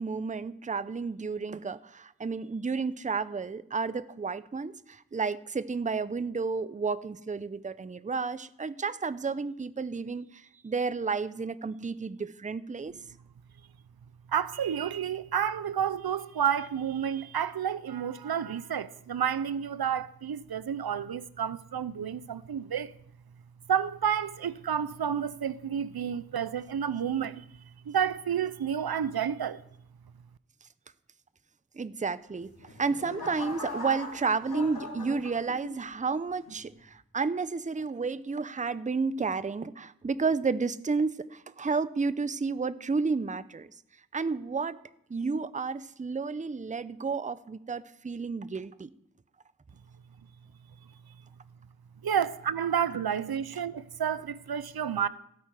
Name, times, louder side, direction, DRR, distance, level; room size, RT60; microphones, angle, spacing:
voice 1, 0.0-12.9 31.7-32.5 32.8-43.7 44.1-44.8 45.1-48.9, right 4 dB, 20° right, 0.5 m, -31 dB
voice 2, 14.3-22.9 23.7-27.4 27.9-29.6 52.0-55.1, right 8 dB, 85° right, 0.6 m, -30 dB
sound 1, 32.3-35.9 36.5-36.8, left 2 dB, 85° left, 3.3 m, -41 dB
16.5 x 8.7 x 4.8 m
wide cardioid pair, 70°, 36 cm